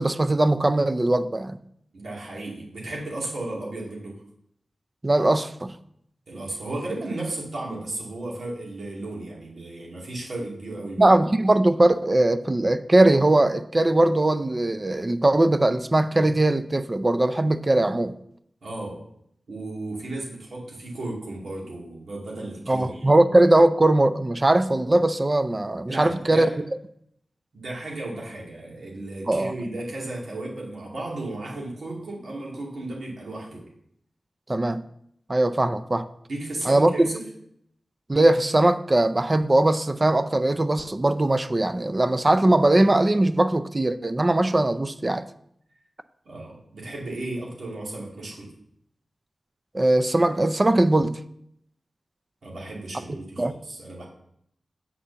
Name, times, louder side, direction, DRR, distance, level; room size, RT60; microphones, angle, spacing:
voice 1, 0.0-1.6 5.0-5.8 11.0-18.1 22.7-26.5 29.3-29.5 34.5-34.8 35.3-36.1 36.7-37.1 38.1-45.3 49.7-51.2 53.4-53.5, right 1 dB, 30° right, 0.5 m, -20 dB
voice 2, 1.9-4.1 6.3-11.1 18.6-19.0 19.5-23.1 25.9-26.6 27.5-33.7 36.3-37.2 46.3-48.5 52.4-54.0, right 2 dB, 80° right, 2.4 m, -34 dB
7.5 x 4.2 x 6.8 m
cardioid pair, 60°, 0 cm